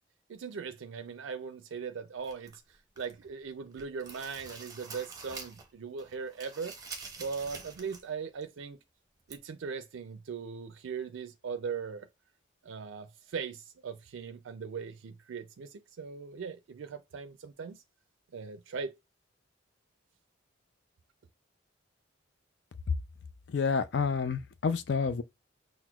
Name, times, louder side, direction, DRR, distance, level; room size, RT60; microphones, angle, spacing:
voice 1, 0.3-6.7 7.2-8.8 9.3-12.1 12.6-17.8 18.3-18.9, right 5 dB, 80° right, 0.4 m, -39 dB
sound 1, 2.2-3.3 3.6-5.7 6.0-8.1 8.4-8.5 9.3-9.4, right 4 dB, 20° right, 0.6 m, -46 dB
voice 2, 23.5-25.2, left 5 dB, 60° left, 0.4 m, -29 dB
5.9 x 2.1 x 2.3 m
head